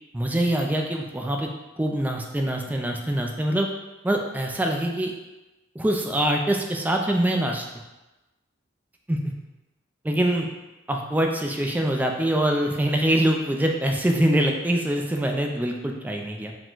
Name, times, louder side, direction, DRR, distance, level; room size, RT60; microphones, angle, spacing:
voice 1, 0.1-1.5 1.8-3.7 4.0-5.1 5.8-7.6 9.1-9.3 10.0-10.5 10.9-16.5, right 1 dB, 10° right, 2 dB, 0.4 m, -24 dB
4.8 x 2.2 x 3.7 m, 1.0 s
head